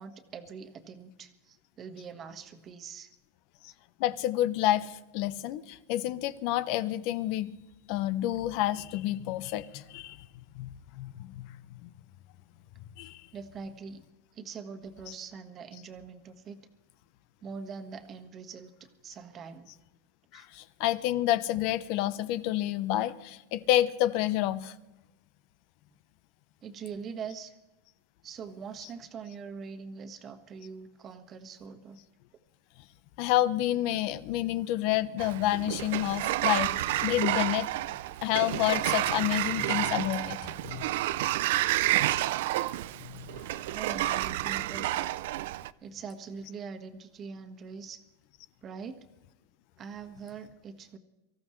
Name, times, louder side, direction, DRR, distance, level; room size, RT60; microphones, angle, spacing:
voice 1, 0.0-3.1 13.3-14.0 14.3-16.6 17.4-18.7 19.0-19.7 20.3-20.5 26.6-27.5 28.2-32.0 43.7-45.1 45.8-48.0 48.6-49.0 49.8-51.0, right 5 dB, 30° right, 7 dB, 1.5 m, -43 dB
voice 2, 4.0-7.5 7.9-10.3 10.5-11.5 11.8-11.9 13.0-13.2 20.3-24.8 33.2-37.7 38.2-40.8 43.0-43.2, left 14 dB, 55° left, 15 dB, 0.9 m, -29 dB
Sliding door, 35.2-45.7, right 15 dB, 65° right, 0.5 m, -30 dB
24.0 x 14.5 x 3.2 m, 0.99 s
supercardioid pair, 135°, 0 cm